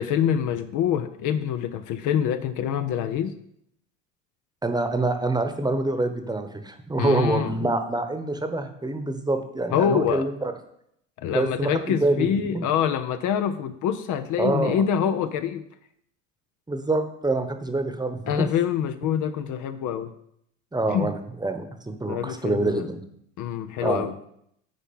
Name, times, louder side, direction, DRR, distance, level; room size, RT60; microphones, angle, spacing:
voice 1, 0.0-3.3 7.0-7.7 9.7-10.3 11.2-15.6 18.3-20.1 20.9-21.1 22.1-22.8 23.4-24.1, left 9 dB, 50° left, 9 dB, 0.7 m, -25 dB
voice 2, 4.6-10.5 11.3-12.6 14.4-14.8 16.7-18.5 20.7-23.0 23.8-24.1, right 2 dB, 10° right, 7 dB, 1.1 m, -26 dB
8.9 x 4.5 x 5.4 m, 0.73 s
hypercardioid pair, 70°, 39 cm